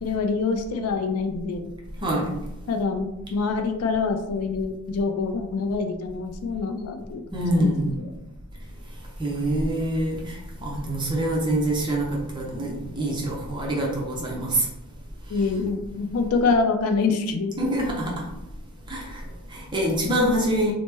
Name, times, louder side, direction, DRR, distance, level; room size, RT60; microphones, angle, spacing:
voice 1, 0.0-1.7 2.7-7.7 8.0-8.1 15.3-17.6, left 4 dB, 80° left, 5 dB, 0.4 m, -26 dB
voice 2, 2.0-2.4 7.3-7.9 9.2-14.7 17.6-18.3 18.9-20.7, right 1 dB, 20° right, -3 dB, 0.6 m, -25 dB
3.0 x 2.0 x 3.3 m, 0.96 s
head